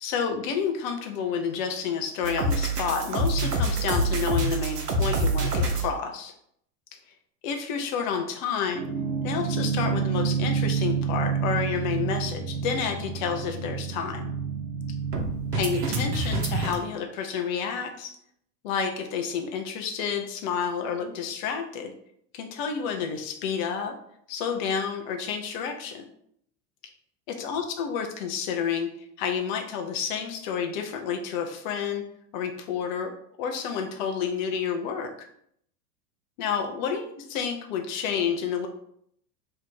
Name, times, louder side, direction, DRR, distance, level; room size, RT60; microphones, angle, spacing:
voice 1, 0.0-6.3 7.4-8.8 9.2-14.3 15.5-18.2 18.6-21.9 22.3-24.0 24.3-26.0 27.3-28.9 29.2-32.0 32.3-33.1 33.4-35.3 36.4-38.7, left 6 dB, 30° left, 5 dB, 0.4 m, -30 dB
sound 1, 2.2-5.9 8.7-16.7, right 3 dB, 80° right, 0.8 m, -27 dB
2.8 x 2.5 x 4.2 m, 0.69 s
figure-of-eight pair, 90°, 47 cm